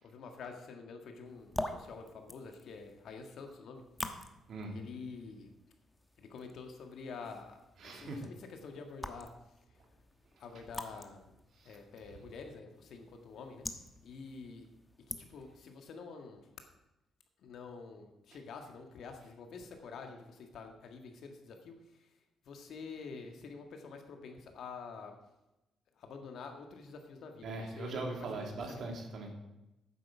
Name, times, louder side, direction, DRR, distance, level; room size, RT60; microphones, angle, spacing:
voice 1, 0.0-3.8 4.7-5.5 6.2-7.6 7.8-9.3 9.7-9.8 10.4-11.3 11.6-13.6 14.0-14.7 15.1-16.5 17.4-22.2 22.4-25.2 25.9-28.0 28.3-28.8, left 4 dB, 70° left, 4 dB, 1.7 m, -48 dB
sound 1, 1.2-15.6, left 1 dB, 15° left, 1.1 m, -47 dB
voice 2, 7.8-8.2 10.3-10.4 11.5-11.8 27.4-29.3, right 2 dB, 60° right, 1 dB, 2.6 m, -40 dB
9.2 x 7.9 x 6.0 m, 0.95 s
cardioid pair, 90°, 0 cm